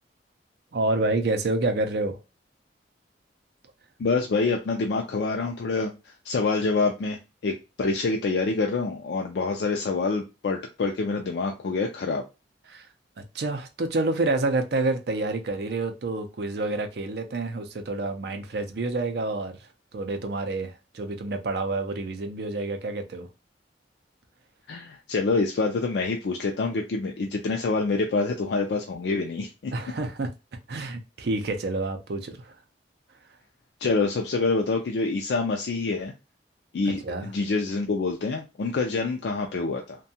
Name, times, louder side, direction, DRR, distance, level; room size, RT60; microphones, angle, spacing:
voice 1, 0.7-2.2 12.7-12.9 13.2-19.6 19.9-23.3 29.7-30.3 30.7-32.5 36.9-37.3, right 2 dB, 60° right, 0.5 m, -28 dB
voice 2, 4.0-12.2 24.7-29.7 33.8-36.1 36.7-40.0, left 3 dB, 65° left, 0.4 m, -26 dB
2.6 x 2.2 x 2.7 m
head